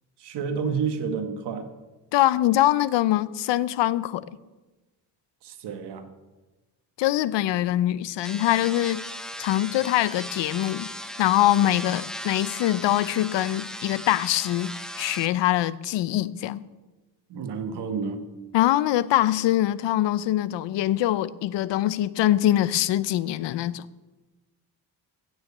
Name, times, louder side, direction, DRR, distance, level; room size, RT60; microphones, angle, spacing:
voice 1, 0.2-1.7 5.4-6.1 17.3-18.2, right 6 dB, 70° right, 1.7 m, -30 dB
voice 2, 2.1-4.2 7.0-9.0 9.4-10.9 11.2-14.7 15.0-16.6 18.5-23.9, left 14 dB, 90° left, 0.7 m, -23 dB
sound 1, 8.2-15.3, equal, ahead, 0.8 m, -37 dB
16.0 x 6.4 x 8.5 m
cardioid pair, 150°, 42 cm